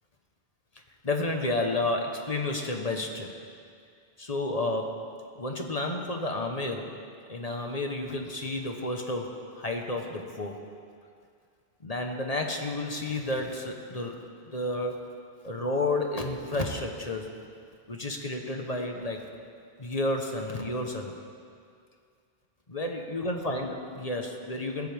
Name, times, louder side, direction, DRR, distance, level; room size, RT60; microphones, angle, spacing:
voice 1, 1.0-3.3 4.2-5.1 5.4-6.9 7.3-10.6 11.8-14.1 14.5-15.0 15.4-17.3 17.9-19.3 19.8-21.1 22.7-24.9, left 2 dB, 35° left, 2 dB, 1.3 m, -31 dB
20.5 x 15.5 x 3.6 m, 2.3 s
omnidirectional pair, 1.1 m